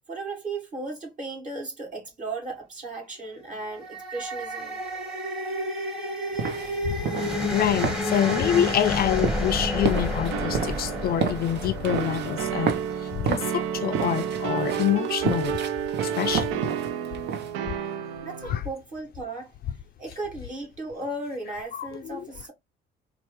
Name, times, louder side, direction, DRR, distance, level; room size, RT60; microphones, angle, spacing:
voice 1, 0.1-4.8 18.2-19.5 20.0-22.5, right 2 dB, 40° right, 2.5 m, -36 dB
sound 1, 3.6-12.9, left 1 dB, 5° right, 1.1 m, -30 dB
sound 2, 6.3-17.5, right 6 dB, 60° right, 0.8 m, -32 dB
voice 2, 7.5-15.6 16.0-16.6 18.5-18.6 21.7-22.2, left 10 dB, 50° left, 0.4 m, -26 dB
sound 3, 10.3-18.6, right 8 dB, 85° right, 0.5 m, -31 dB
4.4 x 2.4 x 3.0 m
cardioid pair, 120°, 20 cm